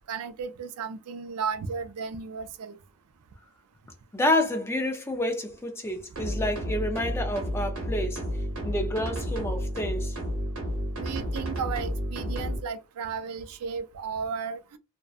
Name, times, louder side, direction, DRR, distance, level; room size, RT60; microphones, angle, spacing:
voice 1, 0.1-2.8 11.0-14.8, right 6 dB, 80° right, 0.4 m, -34 dB
voice 2, 4.1-8.2 8.6-10.2, left 1 dB, 10° left, 0.3 m, -29 dB
sound 1, 6.1-12.6, equal, 65° right, 0.8 m, -31 dB
2.6 x 2.1 x 2.3 m
head